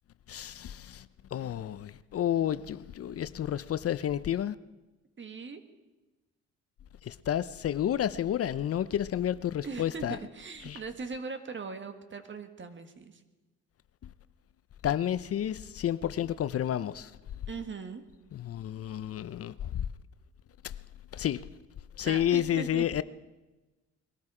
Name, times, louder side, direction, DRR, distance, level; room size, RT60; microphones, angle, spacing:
voice 1, 0.3-1.1 1.3-4.6 7.0-10.2 10.6-10.8 14.8-17.1 18.3-19.8 20.6-20.7 21.1-21.4 22.0-23.0, left 11 dB, 50° left, 0.6 m, -30 dB
voice 2, 5.2-5.6 9.6-13.2 17.5-18.0 22.0-22.9, right 4 dB, 40° right, 1.7 m, -40 dB
21.5 x 13.5 x 4.9 m
cardioid pair, 90°, 30 cm